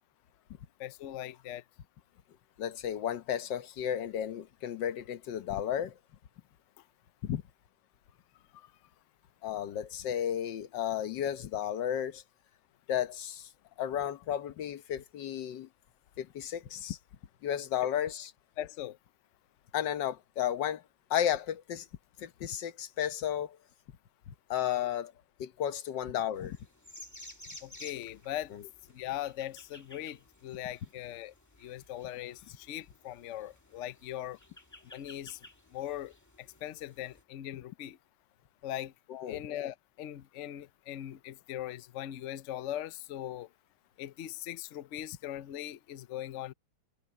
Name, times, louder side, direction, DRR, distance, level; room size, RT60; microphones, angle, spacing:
voice 1, 0.8-1.6 8.5-8.7 18.6-19.0 27.6-28.5 28.9-31.3 31.6-34.4 34.8-35.4 35.7-38.0 38.6-38.9 39.3-43.5 44.0-46.5, left 12 dB, 60° left, 0.8 m, -40 dB
voice 2, 2.6-6.0 7.2-7.4 9.4-12.2 12.9-13.5 13.8-15.7 16.2-17.0 17.4-18.3 19.7-20.8 21.1-21.9 22.2-23.6 24.3-25.1 25.4-26.6 28.5-28.6 39.1-39.4, left 10 dB, 90° left, 1.6 m, -33 dB
sound 1, 26.3-37.2, left 1 dB, 10° left, 1.9 m, -54 dB
omnidirectional pair, 1.9 m